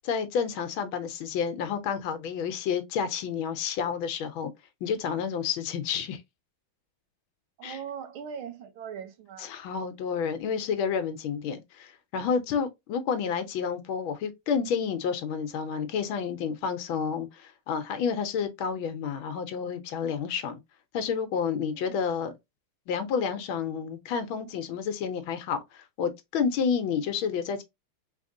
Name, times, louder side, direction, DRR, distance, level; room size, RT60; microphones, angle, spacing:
voice 1, 0.0-4.5 4.8-6.2 7.6-7.8 9.4-20.6 20.9-22.3 22.9-27.6, left 6 dB, 75° left, 1.6 m, -30 dB
voice 2, 7.6-9.5 21.7-22.0, right 7 dB, 80° right, 1.7 m, -40 dB
4.6 x 3.5 x 2.6 m
omnidirectional pair, 2.2 m